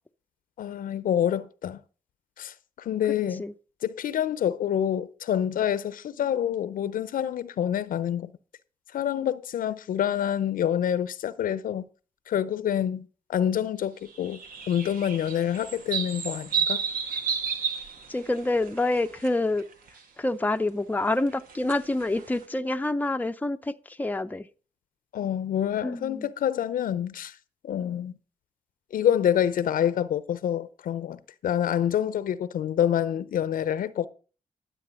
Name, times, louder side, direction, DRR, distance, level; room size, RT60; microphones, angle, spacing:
voice 1, 0.6-1.8 2.4-3.4 3.8-8.3 8.9-11.9 12.3-14.4 14.7-16.8 25.1-27.3 27.6-28.1 28.9-34.1, left 10 dB, 85° left, 0.7 m, -27 dB
sound 1, 14.1-19.3 19.6-20.0 21.2-22.4, right 6 dB, 85° right, 1.4 m, -32 dB
voice 2, 18.1-19.6 20.2-24.5 25.8-26.3, left 2 dB, 10° left, 0.7 m, -27 dB
12.5 x 7.7 x 5.2 m
cardioid pair, 70°, 14 cm